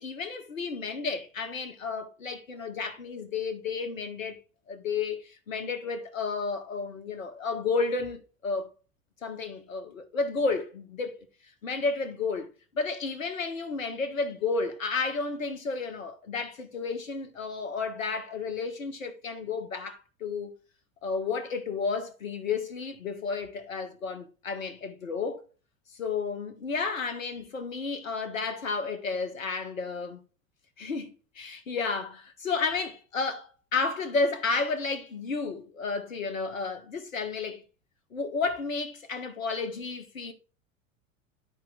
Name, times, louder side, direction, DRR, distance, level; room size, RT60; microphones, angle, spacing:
voice 1, 0.0-4.4 4.7-8.7 9.2-11.2 11.6-20.5 21.0-25.4 25.9-30.2 30.8-37.6 38.1-40.3, left 4 dB, 75° left, 1.5 m, -32 dB
13.0 x 4.5 x 2.4 m
figure-of-eight pair, 80°, 40 cm